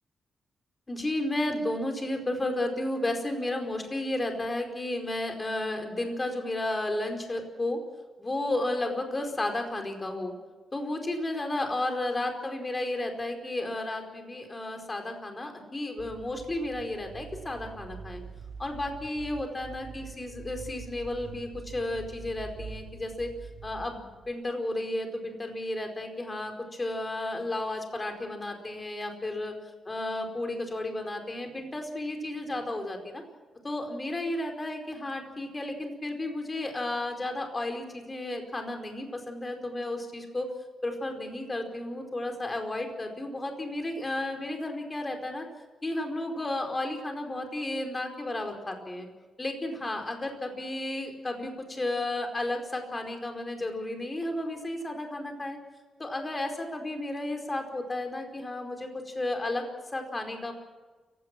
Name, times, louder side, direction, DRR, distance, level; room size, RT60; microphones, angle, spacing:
voice 1, 0.9-7.8 8.2-10.3 10.7-18.2 18.6-23.3 23.6-26.5 26.8-29.5 29.8-33.2 33.6-40.5 40.8-45.5 45.8-49.1 49.4-55.6 56.0-60.5, left 1 dB, 20° left, 4 dB, 4.7 m, -33 dB
sound 1, 16.0-24.3, right 5 dB, 65° right, 4.3 m, -45 dB
29.0 x 17.0 x 6.1 m, 1.3 s
cardioid pair, 115°, 0 cm